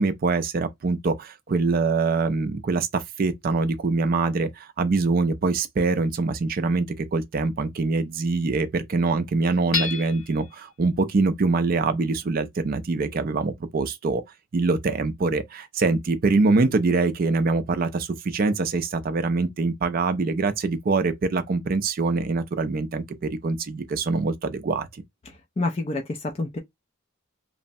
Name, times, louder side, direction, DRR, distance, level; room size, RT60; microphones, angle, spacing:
voice 1, 0.0-14.2 14.5-25.0, right 3 dB, 40° right, 0.4 m, -24 dB
Hammer / Chink clink, 9.7-10.5, left 5 dB, 70° left, 0.7 m, -29 dB
voice 2, 25.3-26.6, left 2 dB, 30° left, 0.3 m, -28 dB
3.1 x 2.0 x 2.6 m
head